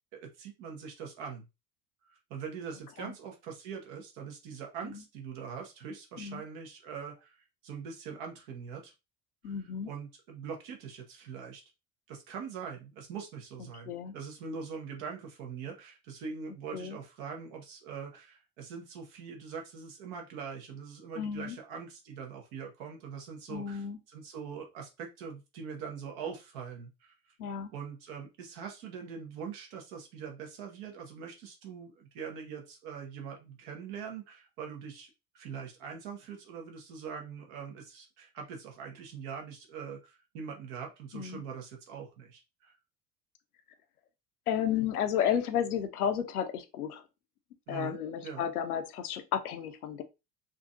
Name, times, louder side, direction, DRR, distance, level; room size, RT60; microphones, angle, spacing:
voice 1, 0.1-1.5 2.1-7.4 7.6-8.9 9.4-9.5 9.8-11.6 12.1-27.1 27.7-35.1 35.3-42.8 47.7-48.5, right 6 dB, 60° right, 1.3 m, -43 dB
voice 2, 9.4-9.9 13.9-14.1 16.7-17.0 21.2-21.6 23.5-24.0 27.4-27.7 41.1-41.4 44.5-47.0 47.7-50.0, left 9 dB, 75° left, 0.7 m, -32 dB
3.7 x 2.7 x 2.4 m
figure-of-eight pair, 65°, 44 cm